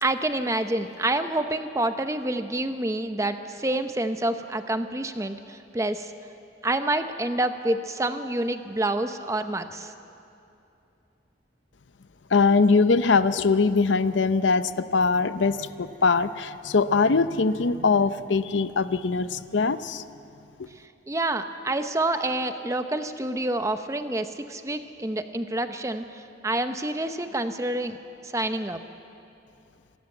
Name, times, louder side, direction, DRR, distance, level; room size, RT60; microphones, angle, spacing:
voice 1, 0.0-6.1 6.6-9.9 21.1-28.0 28.2-28.8, right 2 dB, 15° right, 9 dB, 0.8 m, -28 dB
voice 2, 12.3-20.0 20.6-20.7, left 4 dB, 85° left, 13 dB, 0.6 m, -22 dB
26.0 x 13.5 x 9.0 m, 2.7 s
head